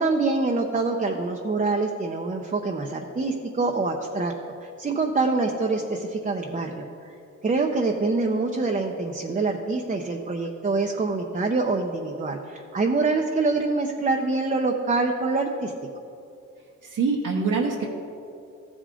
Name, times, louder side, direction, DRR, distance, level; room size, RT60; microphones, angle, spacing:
voice 1, 0.0-4.3 4.6-6.9 7.4-15.7, right 3 dB, 25° right, 2 dB, 0.7 m, -25 dB
voice 2, 16.8-17.9, right 4 dB, 65° right, -4 dB, 1.1 m, -24 dB
14.0 x 5.0 x 3.8 m, 2.7 s
cardioid pair, 55°, 34 cm